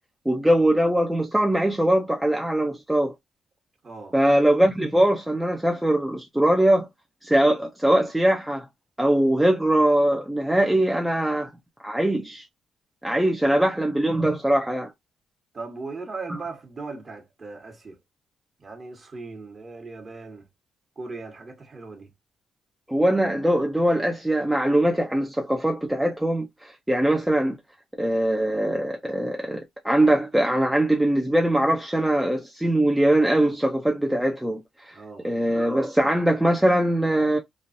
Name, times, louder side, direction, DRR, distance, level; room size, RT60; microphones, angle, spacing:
voice 1, 0.3-3.1 4.1-6.9 7.2-8.7 9.0-11.5 11.8-12.4 13.0-14.9 22.9-27.6 28.0-35.0 35.2-37.4, right 1 dB, 5° right, 0.6 m, -22 dB
voice 2, 3.8-4.1 13.4-13.5 15.5-18.0 18.6-20.4 21.0-22.1 34.9-35.3, right 3 dB, 35° right, 1.3 m, -38 dB
3.0 x 2.4 x 2.6 m
cardioid pair, 90°, 0 cm